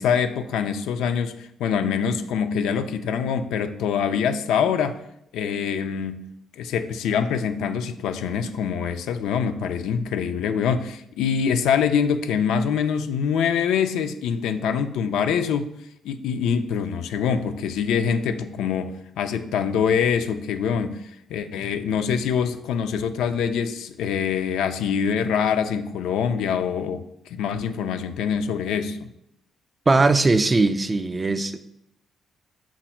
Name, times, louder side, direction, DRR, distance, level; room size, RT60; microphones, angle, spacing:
voice 1, 0.0-5.0 5.3-6.2 6.6-15.7 16.0-29.1, left 7 dB, 85° left, 9 dB, 0.3 m, -24 dB
voice 2, 29.9-31.6, right 3 dB, 25° right, 11 dB, 0.3 m, -19 dB
5.9 x 2.1 x 4.3 m, 0.77 s
cardioid pair, 90°, 0 cm